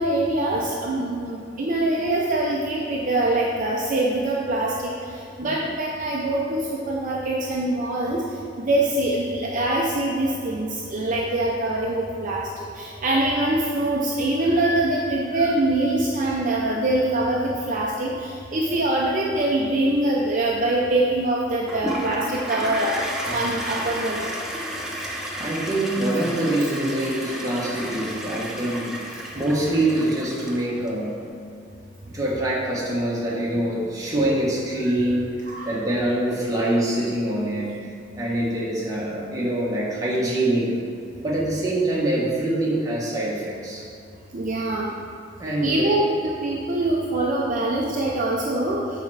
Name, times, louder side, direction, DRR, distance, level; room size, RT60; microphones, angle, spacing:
voice 1, 0.0-8.2 8.6-23.0 23.3-24.2 35.5-35.7 44.3-44.9 45.6-48.8, right 1 dB, 45° right, -3 dB, 0.6 m, -24 dB
Toilet flush, 21.7-30.9, equal, 5° right, 0.6 m, -32 dB
voice 2, 25.0-31.2 32.1-37.7 38.2-40.8 41.2-43.8 45.4-45.9, right 1 dB, 20° right, -6 dB, 1.4 m, -25 dB
6.8 x 4.4 x 4.8 m, 2.5 s
head